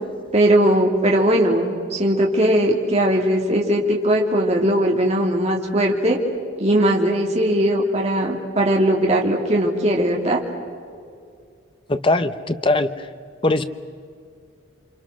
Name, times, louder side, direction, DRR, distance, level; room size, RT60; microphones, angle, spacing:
voice 1, 0.3-6.2 6.6-10.4, right 1 dB, 35° right, -1 dB, 2.5 m, -19 dB
voice 2, 11.9-13.1 13.4-13.6, left 2 dB, 25° left, 10 dB, 1.0 m, -20 dB
29.5 x 25.5 x 6.4 m, 2.3 s
head